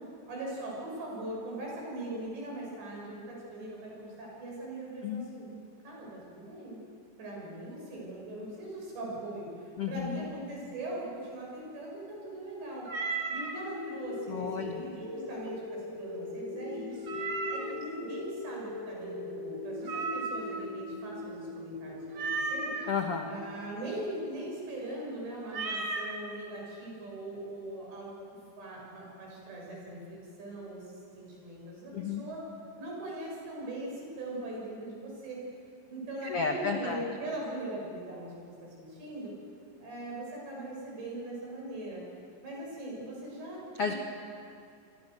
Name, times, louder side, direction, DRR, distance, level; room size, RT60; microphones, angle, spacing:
voice 1, 0.3-5.5 5.8-6.8 7.2-12.9 13.3-17.1 17.5-22.7 23.3-28.2 28.6-32.4 32.8-35.4 35.9-39.3 39.8-42.0 42.4-44.0, right 1 dB, 75° right, -3 dB, 9.5 m, -40 dB
voice 2, 9.8-10.2 14.3-14.8 22.9-23.3 31.9-32.2 36.2-37.0 43.8-43.9, left 5 dB, 80° left, 3 dB, 1.3 m, -32 dB
Meow, 12.8-13.6 17.0-17.8 19.8-20.6 22.1-22.9 25.5-26.1, right 4 dB, 40° right, 2.4 m, -34 dB
sound 1, 13.5-23.5, left 2 dB, 25° left, 4.7 m, -40 dB
29.0 x 23.0 x 6.7 m, 2.4 s
omnidirectional pair, 5.0 m